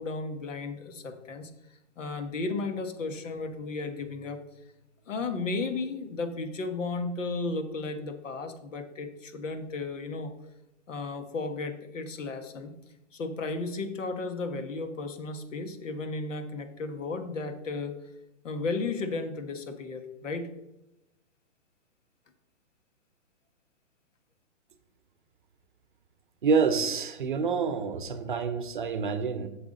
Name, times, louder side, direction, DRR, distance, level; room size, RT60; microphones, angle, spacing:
voice 1, 0.0-1.5 2.0-4.4 5.1-10.3 10.9-12.7 13.1-18.0 18.4-20.5, left 3 dB, 80° left, 8 dB, 1.5 m, -34 dB
voice 2, 26.4-29.5, right 5 dB, 40° right, 11 dB, 0.7 m, -27 dB
8.0 x 7.2 x 4.0 m, 0.92 s
hypercardioid pair, 175°, 38 cm